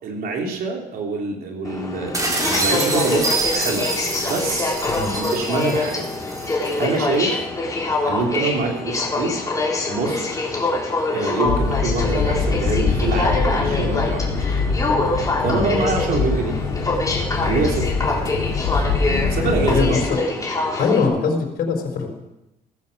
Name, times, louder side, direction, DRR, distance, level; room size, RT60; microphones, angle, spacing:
voice 1, 0.0-3.9 4.2-4.8 5.1-6.1 6.8-7.5 8.1-9.3 9.9-10.3 11.1-14.6 15.0-16.5 17.4-17.9 19.3-20.0, right 3 dB, 60° right, 1 dB, 3.8 m, -25 dB
Aircraft, 1.6-21.1, left 2 dB, 20° left, 3.7 m, -25 dB
sound 1, 2.1-6.8, right 2 dB, 20° right, 3.6 m, -26 dB
sound 2, 11.5-20.1, left 5 dB, 90° left, 3.1 m, -23 dB
voice 2, 15.4-15.7 19.4-20.0 20.8-22.1, left 4 dB, 65° left, 2 dB, 4.2 m, -22 dB
14.5 x 14.5 x 5.8 m, 0.95 s
cardioid pair, 110°, 17 cm